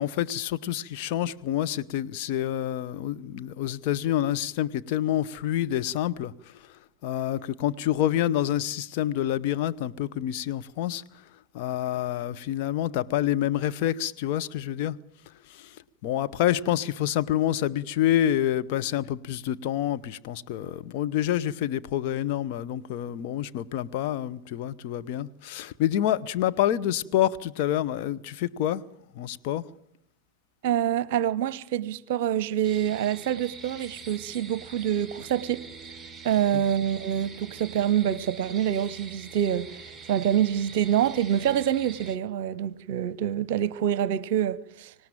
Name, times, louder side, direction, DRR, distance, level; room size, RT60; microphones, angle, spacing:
voice 1, 0.0-6.5 7.0-11.0 11.5-15.0 15.5-15.8 16.0-28.8 29.1-29.6, left 12 dB, 45° left, 0.9 m, -27 dB
voice 2, 30.6-36.0 36.2-44.9, right 10 dB, 50° right, 0.8 m, -26 dB
sound 1, 32.6-42.2, right 4 dB, 10° right, 1.7 m, -44 dB
25.0 x 18.5 x 9.0 m
figure-of-eight pair, 90°, 0 cm